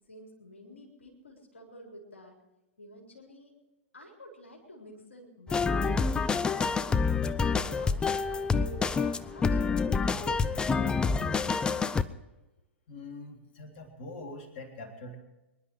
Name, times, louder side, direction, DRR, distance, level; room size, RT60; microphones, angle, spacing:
voice 1, 0.1-2.4 2.8-3.5 3.9-7.0 7.4-8.9 9.2-12.0, equal, 75° left, -1 dB, 4.0 m, -49 dB
sound 1, 5.5-12.0, left 5 dB, 15° left, 0.6 m, -27 dB
voice 2, 12.9-15.2, left 2 dB, 45° left, 2 dB, 3.6 m, -43 dB
25.0 x 11.0 x 4.7 m, 1.0 s
figure-of-eight pair, 100°, 7 cm